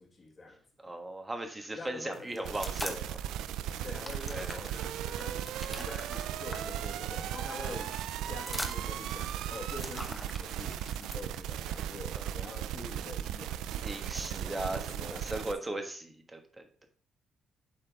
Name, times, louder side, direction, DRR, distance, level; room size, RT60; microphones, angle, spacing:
voice 1, 0.0-0.9 1.7-3.2 3.8-8.0 8.3-15.5, left 3 dB, 35° left, 1.8 m, -46 dB
voice 2, 0.8-3.2 4.3-4.6 7.6-7.9 12.1-12.3 13.8-16.9, right 1 dB, 15° right, 1.3 m, -38 dB
sound 1, 2.1-3.2 3.5-11.4, left 1 dB, 10° left, 1.0 m, -43 dB
sound 2, 2.4-15.5, right 11 dB, 90° right, 0.3 m, -37 dB
7.4 x 4.4 x 3.5 m
cardioid pair, 90°, 0 cm